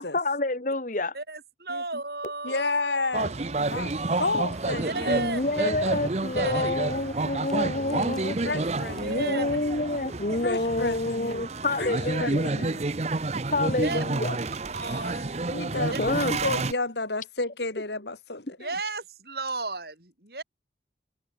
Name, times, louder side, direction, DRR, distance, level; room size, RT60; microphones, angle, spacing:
voice 1, 0.0-1.1 5.1-8.4 9.0-12.5 13.5-14.4 16.0-16.4, left 2 dB, 45° left, 1.5 m, -28 dB
voice 2, 1.1-4.0 4.7-5.7 6.4-6.6 8.9-9.4 11.8-11.9 13.6-14.0 14.7-15.6 15.9-16.0 18.6-20.4, right 3 dB, 55° right, 5.2 m, -34 dB
voice 3, 2.4-3.3 3.6-3.9 4.2-5.2 8.4-9.4 10.4-11.5 11.8-12.8 14.8-15.0 15.5-16.1 16.4-18.7, left 3 dB, 70° left, 3.1 m, -31 dB
sound 1, 3.1-16.7, right 2 dB, 35° right, 0.8 m, -29 dB
sound 2, 4.5-12.6, equal, 5° left, 7.4 m, -53 dB
head